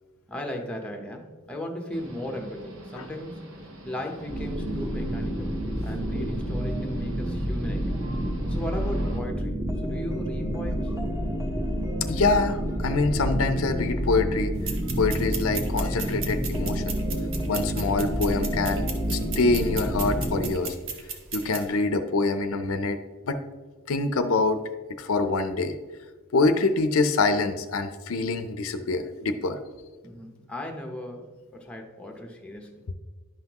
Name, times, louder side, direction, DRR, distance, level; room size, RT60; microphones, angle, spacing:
voice 1, 0.3-3.5 3.8-8.0 8.5-10.9 30.0-32.8, left 1 dB, 5° left, 2 dB, 0.8 m, -37 dB
sound 1, 1.9-9.2, right 1 dB, 80° right, 1.1 m, -44 dB
sound 2, 4.3-20.5, equal, 15° right, 1.1 m, -29 dB
voice 2, 12.1-14.5 15.0-17.0 17.5-20.8 21.3-23.0 23.3-23.4 23.9-24.6 25.0-25.8 26.3-29.6, left 3 dB, 75° left, 9 dB, 0.5 m, -25 dB
sound 3, 14.6-21.6, right 5 dB, 65° right, 1.0 m, -37 dB
11.0 x 5.7 x 2.9 m, 1.4 s
head